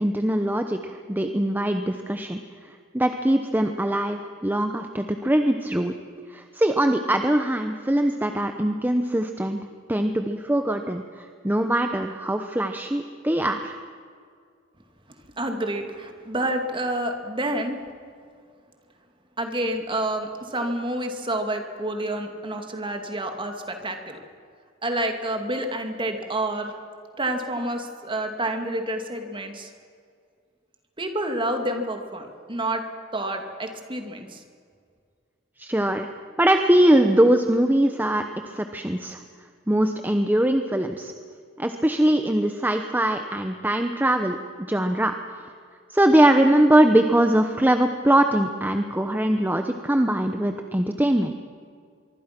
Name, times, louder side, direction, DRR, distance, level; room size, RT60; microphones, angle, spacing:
voice 1, 0.0-5.9 6.3-9.6 9.9-13.7 35.6-36.1 36.4-39.2 39.7-41.1 41.6-45.1 45.9-51.3, right 1 dB, 10° right, 6 dB, 0.9 m, -22 dB
voice 2, 15.4-17.8 19.4-24.2 24.8-26.7 27.2-29.7 31.0-32.8 33.1-34.4, right 1 dB, 25° right, 5 dB, 2.4 m, -28 dB
24.5 x 24.0 x 6.1 m, 2.2 s
head